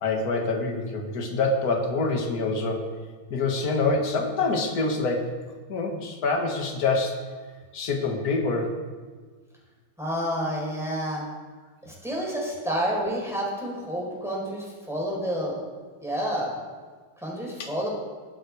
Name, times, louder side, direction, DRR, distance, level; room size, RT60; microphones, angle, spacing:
voice 1, 0.0-2.9 3.3-5.3 5.7-7.2 7.7-8.7 17.6-17.7, left 3 dB, 45° left, 1 dB, 2.1 m, -26 dB
voice 2, 10.0-11.2 11.8-15.6 16.0-16.5 17.2-17.9, equal, ahead, -4 dB, 4.9 m, -29 dB
21.5 x 7.8 x 4.9 m, 1.5 s
omnidirectional pair, 2.4 m